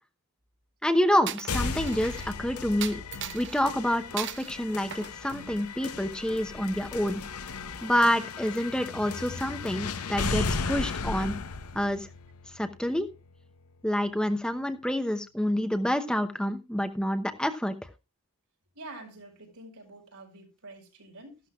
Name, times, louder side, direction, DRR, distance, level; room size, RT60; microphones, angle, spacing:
voice 1, 0.8-3.0 3.3-7.2 7.8-11.4 11.7-12.1 12.5-13.1 13.8-17.7, equal, 5° left, 0.8 m, -28 dB
Coin (dropping), 1.3-2.3 2.8-3.6 4.2-4.5 4.9-6.0, right 11 dB, 55° right, 0.7 m, -38 dB
sound 1, 1.5-13.4, left 4 dB, 80° left, 0.9 m, -35 dB
voice 2, 18.7-21.4, right 2 dB, 85° right, 5.1 m, -47 dB
14.0 x 12.0 x 2.4 m
head